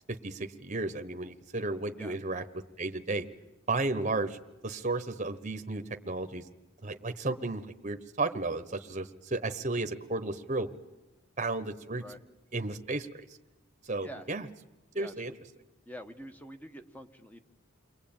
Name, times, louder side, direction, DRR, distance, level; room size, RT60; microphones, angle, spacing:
voice 1, 0.1-2.4 2.8-3.3 3.7-6.5 6.8-10.7 11.4-12.0 12.5-13.3 13.8-14.4 14.9-15.3, right 2 dB, 35° right, 8 dB, 1.1 m, -33 dB
voice 2, 14.9-15.4 15.8-17.4, equal, 10° left, 8 dB, 1.3 m, -46 dB
29.0 x 22.5 x 8.9 m, 1.0 s
head